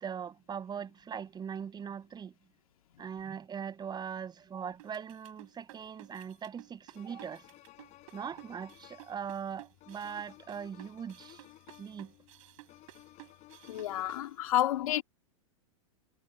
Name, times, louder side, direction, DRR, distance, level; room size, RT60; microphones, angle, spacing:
voice 1, 0.0-2.3 3.0-7.4 8.1-11.4 11.8-12.1 14.5-14.6, right 7 dB, 25° right, 7.2 m, -40 dB
sound 1, 4.8-14.3, right 19 dB, 60° right, 7.6 m, -54 dB
sound 2, 6.2-6.3 6.9-14.2, left 16 dB, 40° left, 5.8 m, -56 dB
voice 2, 13.7-15.0, left 14 dB, 75° left, 2.2 m, -30 dB
hypercardioid pair, 110°, 18 cm